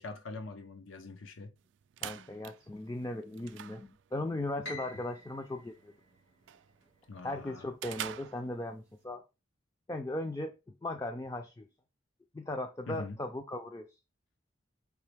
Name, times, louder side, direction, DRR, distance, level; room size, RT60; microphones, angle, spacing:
voice 1, 0.0-1.5 7.1-7.7 12.9-13.2, left 3 dB, 90° left, 0.8 m, -43 dB
sound 1, 1.6-9.0, right 11 dB, 65° right, 0.3 m, -48 dB
voice 2, 2.0-5.9 7.2-9.2 9.9-11.7 12.3-14.0, left 1 dB, 15° left, 0.3 m, -38 dB
Piano, 4.6-6.9, left 1 dB, 60° left, 1.8 m, -47 dB
4.7 x 3.0 x 3.3 m
head